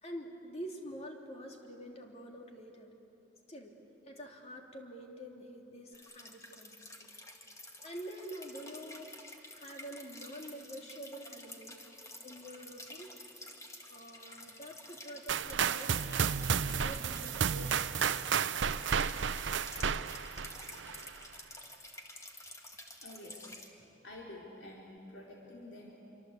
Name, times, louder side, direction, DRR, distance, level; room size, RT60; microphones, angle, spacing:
voice 1, 0.0-2.9 3.5-7.1 7.8-11.8 12.2-13.1 13.9-16.4 16.7-18.3, equal, 35° left, 2 dB, 2.9 m, -47 dB
sound 1, 5.9-23.7, left 1 dB, 15° left, 2.1 m, -50 dB
sound 2, 15.3-21.1, right 7 dB, 90° right, 0.6 m, -32 dB
voice 2, 23.0-23.7 24.0-25.9, left 1 dB, 75° left, -3 dB, 4.0 m, -49 dB
27.0 x 24.5 x 8.3 m, 3.0 s
head